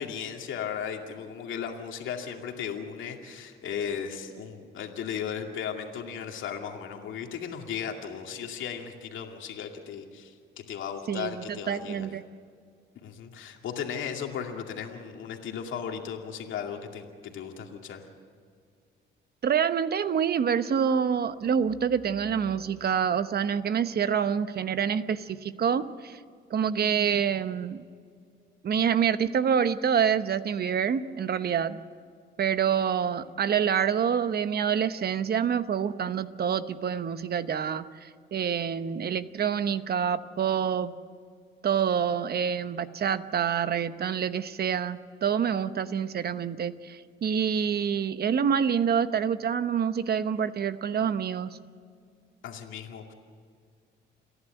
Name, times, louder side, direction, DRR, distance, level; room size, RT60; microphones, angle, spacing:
voice 1, 0.0-12.1 13.0-18.1 52.4-53.1, left 7 dB, 75° left, 3 dB, 2.4 m, -36 dB
voice 2, 11.1-12.2 19.4-26.2 26.5-27.8 28.6-31.8 32.4-40.9 41.6-51.6, right 7 dB, 50° right, 12 dB, 1.0 m, -27 dB
29.0 x 11.0 x 9.1 m, 2.2 s
cardioid pair, 90°, 20 cm